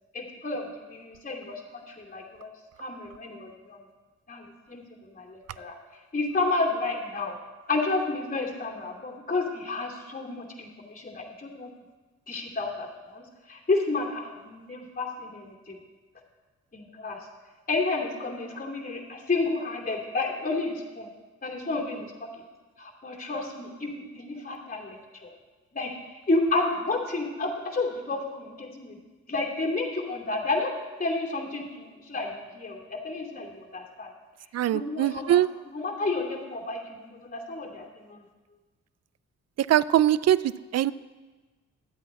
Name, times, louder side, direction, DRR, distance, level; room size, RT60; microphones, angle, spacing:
voice 1, 0.1-2.5 2.8-3.8 4.3-5.8 6.1-7.4 7.7-11.7 12.3-15.7 16.7-17.3 17.7-21.1 21.4-22.4 22.8-25.0 25.2-25.3 25.7-25.9 26.3-29.0 29.3-30.7 31.0-34.1 34.7-38.2, left 3 dB, 25° left, 0 dB, 2.6 m, -31 dB
voice 2, 34.5-35.5 39.7-40.4 40.7-40.9, right 12 dB, 55° right, 18 dB, 0.4 m, -21 dB
12.0 x 8.3 x 4.2 m, 1.3 s
cardioid pair, 55°, 32 cm